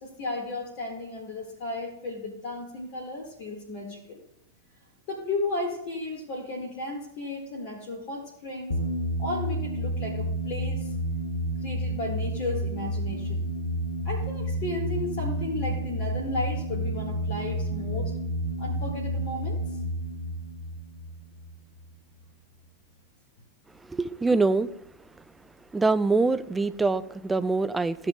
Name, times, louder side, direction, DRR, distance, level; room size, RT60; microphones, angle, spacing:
voice 1, 0.0-4.2 5.1-8.7 9.2-10.9 11.6-13.4 14.1-18.1 18.6-19.6, left 2 dB, 45° left, 1.7 m, -34 dB
sound 1, 8.7-21.9, equal, 75° left, 1.2 m, -30 dB
voice 2, 23.9-24.7 25.7-28.1, right 3 dB, 10° right, 0.4 m, -24 dB
15.0 x 7.5 x 2.3 m
figure-of-eight pair, 90°, 0 cm